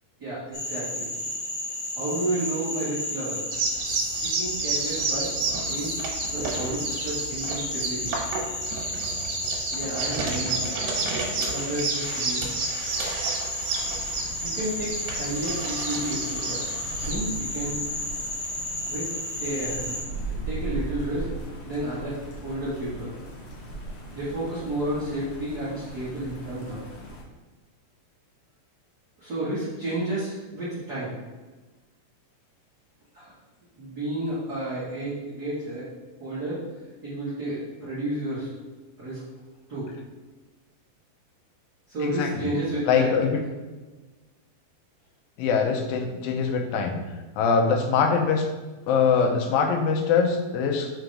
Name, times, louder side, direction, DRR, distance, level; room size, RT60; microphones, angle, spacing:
voice 1, 0.2-1.0 1.9-3.4 4.2-5.3 5.7-6.0 6.3-8.1 9.7-10.7 11.5-12.5 14.4-16.6 17.0-17.8 18.9-19.1 19.4-20.0 20.2-21.3 21.6-23.1 24.1-26.8 29.2-31.1 33.1-33.3 33.8-35.8 36.2-36.6 37.0-38.5 39.0-39.2 39.7-39.9 41.9-43.1, right 1 dB, 40° right, -11 dB, 1.6 m, -31 dB
Frog, 0.5-20.0, left 1 dB, 35° left, 1.8 m, -33 dB
sound 1, 3.5-17.2, right 4 dB, 85° right, 2.8 m, -31 dB
sound 2, 13.7-27.2, right 2 dB, 70° left, 1.3 m, -38 dB
voice 2, 42.2-42.5 42.9-43.4 45.4-47.0 47.4-48.5 48.9-50.9, left 5 dB, 90° left, 3 dB, 2.5 m, -23 dB
5.8 x 3.8 x 4.7 m, 1.2 s
omnidirectional pair, 4.0 m